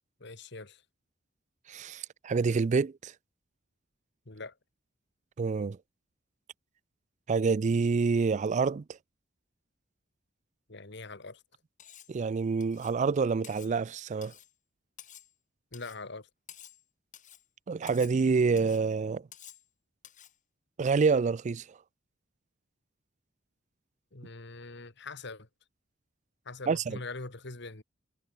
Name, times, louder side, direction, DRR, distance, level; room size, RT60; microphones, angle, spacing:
voice 1, 0.2-0.8 4.3-4.6 10.7-11.4 15.7-16.3 24.1-25.5 26.5-27.8, left 3 dB, 65° left, 2.3 m, -43 dB
voice 2, 1.7-3.1 5.4-5.8 7.3-8.8 12.1-14.3 17.7-19.2 20.8-21.6 26.7-27.0, right 4 dB, 40° right, 0.4 m, -27 dB
Cutlery silverware, 11.8-12.2 12.6-13.0 13.4-13.7 14.2-14.5 15.0-15.3 15.7-16.0 16.5-16.8 17.1-17.5 17.9-18.2 18.6-18.8 19.3-19.7 20.0-20.4, left 10 dB, 40° left, 2.9 m, -51 dB
head